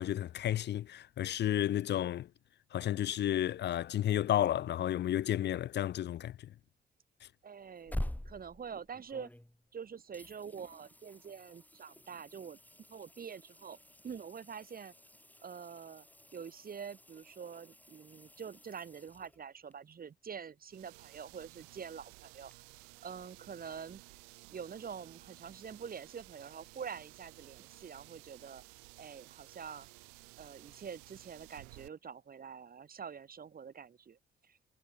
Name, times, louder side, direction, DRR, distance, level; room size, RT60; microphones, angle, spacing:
voice 1, 0.0-2.3 2.7-6.4, left 12 dB, 55° left, 0.4 m, -32 dB
voice 2, 7.4-8.0 8.2-9.3 9.7-12.6 12.9-13.8 14.0-14.9 15.4-16.1 16.3-22.5 23.0-24.0 24.5-28.6 29.0-29.9 30.4-34.2 34.4-34.6, right 7 dB, 45° right, 1.0 m, -46 dB
sound 1, 7.6-9.8 10.1-19.7 22.5-22.6, left 1 dB, 10° left, 3.4 m, -47 dB
sound 2, 20.7-31.9, right 40 dB or more, 90° right, 5.3 m, -56 dB
hypercardioid pair, 45°, 21 cm